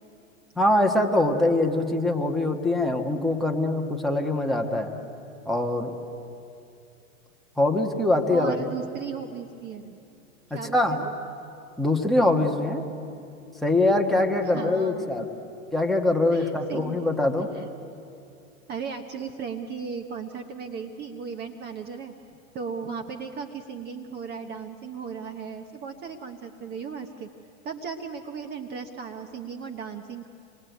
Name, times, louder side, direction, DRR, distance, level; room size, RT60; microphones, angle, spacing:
voice 1, 0.5-4.9 5.4-5.9 7.6-8.7 10.5-11.0 11.8-12.9 13.6-15.2 15.7-17.5, left 2 dB, ahead, 3 dB, 1.4 m, -23 dB
voice 2, 8.3-10.0 10.5-11.1 14.5-15.3 16.3-17.0 17.5-17.6 18.7-22.1 22.5-27.3 27.6-30.3, right 6 dB, 25° right, 5 dB, 1.1 m, -36 dB
26.5 x 21.0 x 9.3 m, 2.6 s
hypercardioid pair, 140°, 41 cm